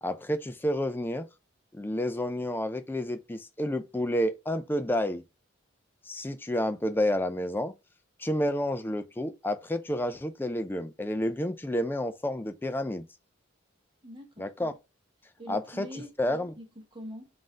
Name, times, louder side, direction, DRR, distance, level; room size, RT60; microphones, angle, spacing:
voice 1, 0.0-1.3 1.7-5.2 6.1-7.7 8.2-13.1 14.4-14.7 15.5-15.9 16.2-16.5, left 1 dB, 10° left, 0.3 m, -30 dB
voice 2, 14.0-14.5 15.4-16.2 16.6-17.3, equal, 25° right, 1.0 m, -43 dB
3.9 x 2.5 x 3.5 m
head